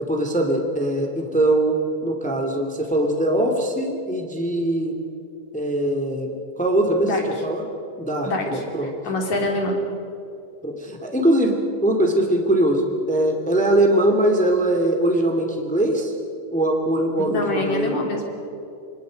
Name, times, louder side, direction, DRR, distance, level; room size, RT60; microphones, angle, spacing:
voice 1, 0.0-4.9 5.5-7.6 8.0-8.9 10.6-16.1 16.5-18.0, right 1 dB, 5° left, 3 dB, 1.1 m, -21 dB
voice 2, 8.2-9.8 17.2-18.5, left 2 dB, 45° left, 1 dB, 4.1 m, -25 dB
28.5 x 25.5 x 5.2 m, 2.7 s
omnidirectional pair, 4.9 m